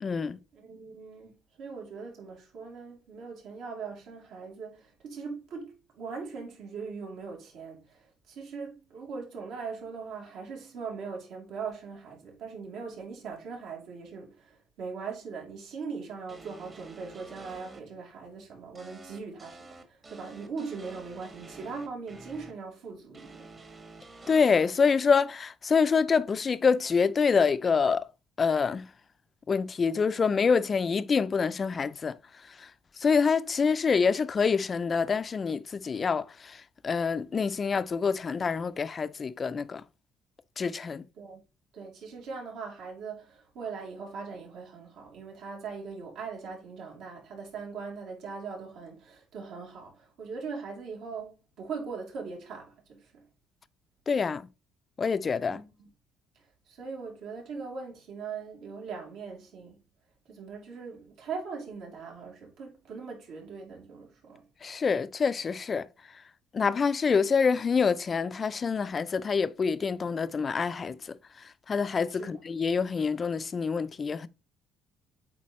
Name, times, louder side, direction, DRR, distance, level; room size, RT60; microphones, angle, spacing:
voice 1, 0.0-0.4 24.3-28.1 28.4-28.9 29.5-32.2 32.5-32.7 33.0-39.8 40.6-41.1 54.1-54.5 55.0-55.6 64.6-65.9 66.5-74.3, left 5 dB, 30° left, 0.4 m, -26 dB
voice 2, 0.5-23.5 41.2-41.4 41.7-53.2 55.5-55.9 56.7-59.8 60.3-64.4 72.1-72.4, right 5 dB, 75° right, 3.1 m, -40 dB
sound 1, 16.3-17.8 18.8-22.5 23.1-24.7, right 3 dB, 25° right, 1.2 m, -49 dB
8.3 x 4.3 x 3.1 m
cardioid pair, 135°, 0 cm